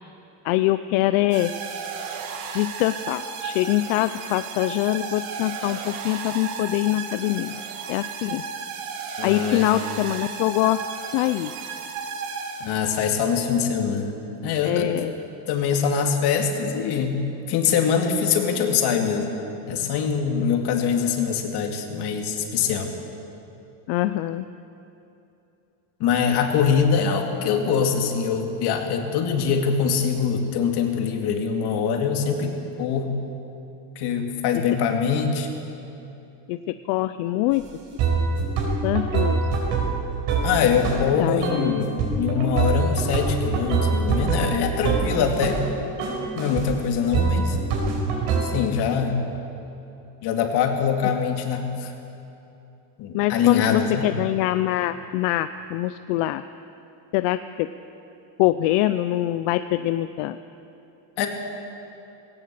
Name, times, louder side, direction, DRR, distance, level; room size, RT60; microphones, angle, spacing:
voice 1, 0.4-1.5 2.5-7.6 7.9-8.4 9.2-10.8 11.1-11.5 14.6-15.1 23.9-24.5 36.5-37.7 38.8-39.4 41.2-41.8 53.1-56.4 57.1-57.7 58.4-60.4, left 15 dB, 75° left, 12 dB, 0.7 m, -24 dB
sound 1, 1.3-13.1, right 6 dB, 90° right, 2.5 m, -34 dB
voice 2, 9.2-9.6 12.6-14.2 14.4-14.9 15.5-19.3 19.7-22.9 26.0-32.5 32.8-33.2 34.0-35.5 40.4-45.6 46.3-47.6 48.4-49.2 50.2-51.9 53.0-54.1 61.2-61.3, left 6 dB, 50° left, 3 dB, 2.4 m, -23 dB
sound 2, 37.5-37.6 38.0-41.1 41.4-41.7 42.0-45.6 46.0-46.7 47.1-48.4, right 4 dB, 65° right, 4.7 m, -24 dB
19.0 x 18.0 x 7.6 m, 2.9 s
cardioid pair, 175°, 49 cm